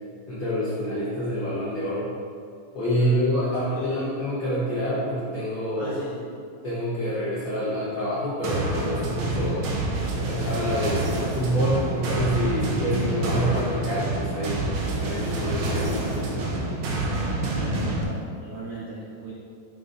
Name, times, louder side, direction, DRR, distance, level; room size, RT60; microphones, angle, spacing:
voice 1, 0.3-2.1 2.7-6.0 6.6-9.7 10.1-16.6, equal, 75° left, -10 dB, 1.0 m, -27 dB
voice 2, 3.0-4.1 5.8-6.3 8.7-8.8 17.3-19.3, right 2 dB, 90° right, -6 dB, 1.2 m, -38 dB
sound 1, 8.4-18.0, right 2 dB, 70° right, 1.6 m, -27 dB
7.0 x 5.3 x 2.6 m, 2.4 s
omnidirectional pair, 3.7 m